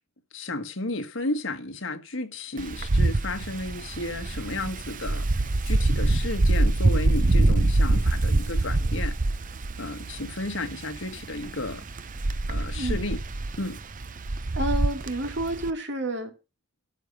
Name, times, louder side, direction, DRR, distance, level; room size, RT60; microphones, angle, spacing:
voice 1, 0.3-5.3 5.6-9.2 9.8-11.9 12.5-13.2 13.6-13.8, left 2 dB, 80° left, 1.6 m, -33 dB
Wind, 2.6-15.7, right 2 dB, 45° right, 0.7 m, -25 dB
voice 2, 12.7-13.1 14.6-16.3, right 1 dB, 65° right, 2.5 m, -30 dB
12.5 x 5.4 x 6.4 m
head